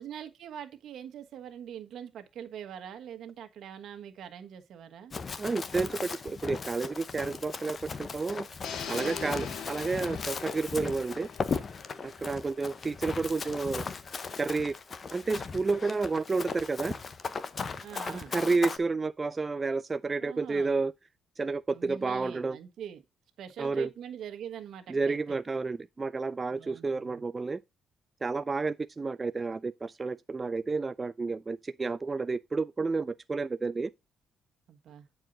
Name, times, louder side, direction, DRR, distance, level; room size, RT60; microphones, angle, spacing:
voice 1, 0.0-5.1 8.9-9.3 17.8-18.4 20.2-20.8 21.7-23.0 23.4-25.4 26.5-27.2 34.7-35.1, right 9 dB, 70° right, 1.4 m, -43 dB
Run, 5.1-18.8, left 5 dB, 40° left, 0.9 m, -38 dB
voice 2, 5.4-8.5 8.9-11.3 12.0-13.8 14.4-14.7 15.1-17.0 18.1-20.9 21.4-22.6 23.6-23.9 24.9-27.6 28.2-33.9, right 4 dB, 30° right, 0.3 m, -30 dB
sound 1, 8.6-12.7, left 7 dB, 70° left, 1.1 m, -42 dB
9.0 x 4.7 x 3.9 m
cardioid pair, 90°, 0 cm